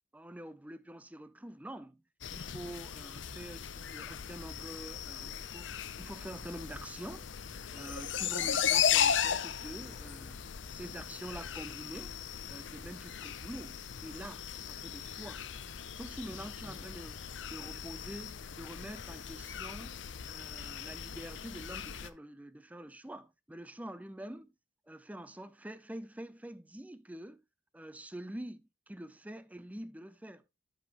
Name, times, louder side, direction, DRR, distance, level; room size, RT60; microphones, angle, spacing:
voice 1, 0.1-2.0 2.3-12.2 12.5-15.5 15.9-17.2 17.5-24.5 24.9-27.4 27.7-30.4, right 1 dB, 10° right, 0.5 m, -46 dB
sound 1, 2.2-22.1, left 8 dB, 75° left, 0.6 m, -37 dB
13.0 x 5.3 x 3.0 m
head